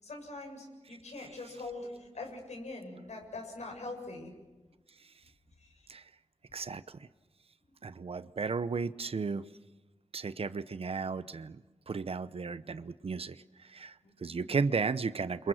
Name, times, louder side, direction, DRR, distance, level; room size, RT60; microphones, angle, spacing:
voice 1, 0.0-4.3 5.6-5.7 14.0-14.4, left 2 dB, 80° left, 2 dB, 7.2 m, -43 dB
voice 2, 6.5-6.8 7.8-9.4 10.1-11.6 11.9-13.4 13.7-13.9 14.2-15.5, right 4 dB, 55° right, 14 dB, 0.8 m, -34 dB
30.0 x 26.5 x 6.4 m, 1.2 s
wide cardioid pair, 95°, 12 cm